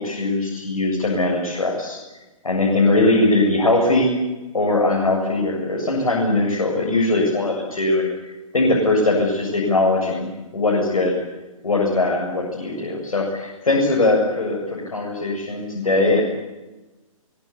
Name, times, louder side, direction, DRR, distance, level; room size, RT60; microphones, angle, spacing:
voice 1, 0.0-2.0 2.4-4.2 4.5-8.1 8.5-11.2 11.6-16.2, left 2 dB, 80° left, -2 dB, 7.6 m, -20 dB
23.5 x 23.0 x 8.8 m, 1.1 s
hypercardioid pair, 130°, 18 cm